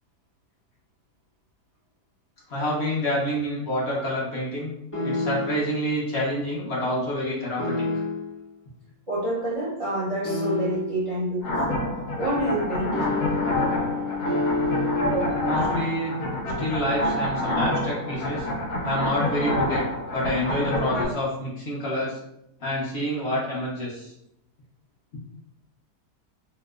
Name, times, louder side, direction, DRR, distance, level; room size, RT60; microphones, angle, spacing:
voice 1, 2.5-4.7 5.0-7.8 15.4-16.1 16.6-18.5 18.8-19.8 20.1-22.2 22.6-24.1, equal, 55° left, -5 dB, 0.9 m, -27 dB
sound 1, 4.9-5.7 7.6-8.4 10.2-11.1 12.9-15.6, left 3 dB, 10° left, 0.6 m, -28 dB
voice 2, 9.1-11.8 12.2-12.9 15.0-15.7, right 1 dB, 45° right, -8 dB, 0.4 m, -28 dB
sound 2, 11.4-21.1, left 1 dB, 75° left, 1.2 m, -27 dB
2.8 x 2.0 x 3.4 m, 0.79 s
omnidirectional pair, 1.7 m